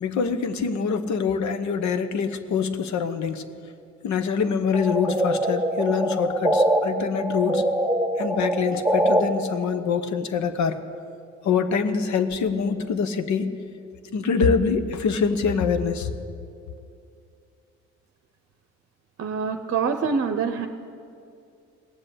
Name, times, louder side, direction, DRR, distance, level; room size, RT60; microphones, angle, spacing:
voice 1, 0.0-3.5 4.0-7.7 8.2-10.8 11.4-13.6 14.1-16.1, left 6 dB, 65° left, 11 dB, 1.1 m, -25 dB
sound 1, 4.7-6.8 7.2-9.2, right 1 dB, 5° left, 2.2 m, -23 dB
voice 2, 19.2-20.7, right 5 dB, 50° right, 7 dB, 0.8 m, -25 dB
17.5 x 7.7 x 10.0 m, 2.5 s
cardioid pair, 90°, 30 cm